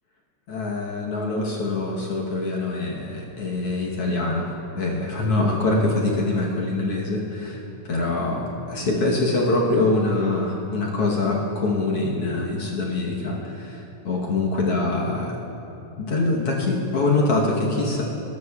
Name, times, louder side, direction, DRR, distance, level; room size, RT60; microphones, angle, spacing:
voice 1, 0.5-15.4 16.0-18.0, left 2 dB, 60° left, -3 dB, 1.7 m, -24 dB
21.0 x 12.5 x 2.4 m, 3.0 s
omnidirectional pair, 3.6 m